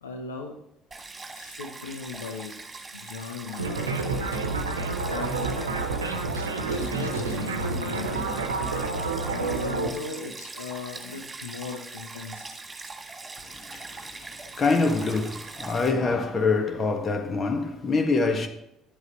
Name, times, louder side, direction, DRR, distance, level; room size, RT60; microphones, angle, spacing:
voice 1, 0.0-0.6 1.3-2.6 2.9-4.0 5.1-5.8 6.6-8.4 9.3-12.6, left 5 dB, 90° left, 0.7 m, -38 dB
Stream, 0.9-15.9, right 3 dB, 25° right, 2.4 m, -42 dB
sound 1, 3.6-9.9, right 3 dB, 90° right, 0.8 m, -29 dB
voice 2, 13.5-18.5, left 3 dB, 40° left, 1.6 m, -25 dB
11.0 x 8.1 x 3.1 m
hypercardioid pair, 55°, 0 cm